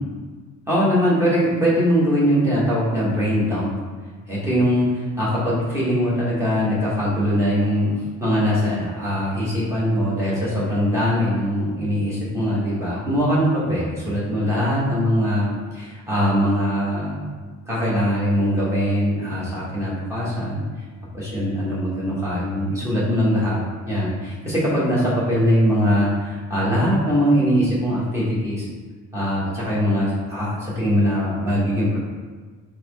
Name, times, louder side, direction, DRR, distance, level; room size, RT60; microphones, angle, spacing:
voice 1, 0.7-3.7 4.3-7.9 8.2-17.2 17.7-20.6 21.1-23.6 23.9-28.7 29.1-32.0, equal, 10° right, -8 dB, 1.3 m, -21 dB
4.4 x 3.0 x 4.0 m, 1.4 s
cardioid pair, 180°, 32 cm